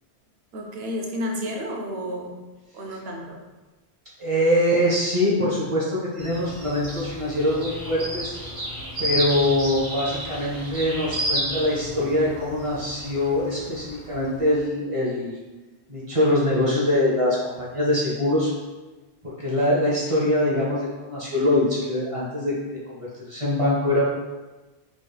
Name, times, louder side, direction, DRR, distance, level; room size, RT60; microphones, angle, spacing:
voice 1, 0.5-2.4 2.7-3.4, equal, 75° right, 1 dB, 0.8 m, -31 dB
voice 2, 4.2-8.4 9.0-15.3 15.9-18.5 19.2-22.5 22.9-24.0, left 1 dB, 35° right, -6 dB, 0.7 m, -23 dB
sound 1, 6.2-14.6, equal, 55° right, 1.5 m, -32 dB
3.4 x 3.1 x 2.3 m, 1.2 s
omnidirectional pair, 1.1 m